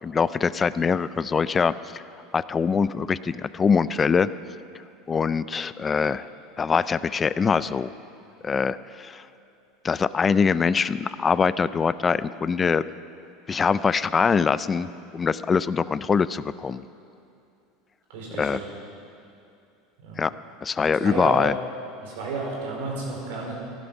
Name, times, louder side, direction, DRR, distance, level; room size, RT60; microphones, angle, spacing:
voice 1, 0.0-2.0 2.3-4.3 5.1-6.2 6.6-7.9 8.4-9.2 9.8-12.8 13.5-16.8 18.4-18.6 20.2-20.3 20.6-21.5, left 5 dB, 25° left, 16 dB, 0.4 m, -23 dB
voice 2, 18.1-18.7 20.0-20.2 21.0-21.4 22.0-23.5, right 3 dB, 80° right, -2 dB, 4.3 m, -32 dB
16.0 x 11.5 x 5.4 m, 2.6 s
supercardioid pair, 115°, 0 cm